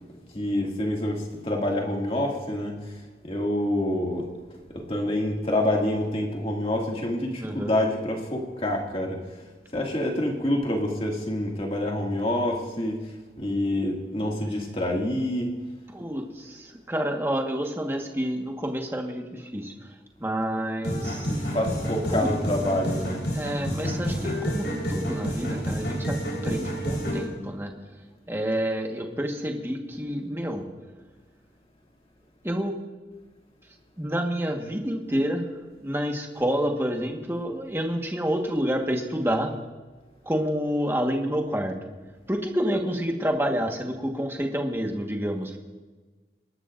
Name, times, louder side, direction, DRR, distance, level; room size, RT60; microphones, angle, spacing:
voice 1, 0.3-3.0 3.2-4.3 4.7-9.2 9.7-13.0 13.4-15.5 21.3-23.3, left 1 dB, 30° left, 0 dB, 2.2 m, -27 dB
voice 2, 7.3-7.7 15.9-19.9 20.2-21.4 22.1-22.3 23.3-26.2 26.4-27.7 28.3-30.6 32.4-32.7 34.0-35.5 35.8-39.6 40.2-41.9 42.3-45.6, equal, 15° right, 2 dB, 1.4 m, -28 dB
sound 1, 20.8-27.3, equal, 75° left, 4.2 m, -29 dB
27.0 x 12.0 x 2.6 m, 1.3 s
head